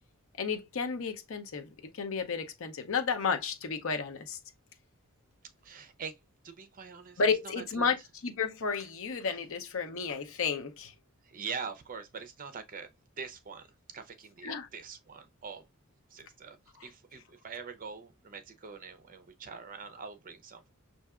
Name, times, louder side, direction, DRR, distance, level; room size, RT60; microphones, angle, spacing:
voice 1, 0.4-1.7 1.9-4.4 7.2-8.0 8.2-10.9 14.4-14.7, left 5 dB, 65° left, 0.6 m, -32 dB
voice 2, 5.6-6.2 6.4-7.9 11.2-12.9 13.2-13.7 13.9-15.6 16.1-16.6 16.8-20.7, right 5 dB, 40° right, 0.5 m, -43 dB
5.6 x 2.6 x 2.3 m
head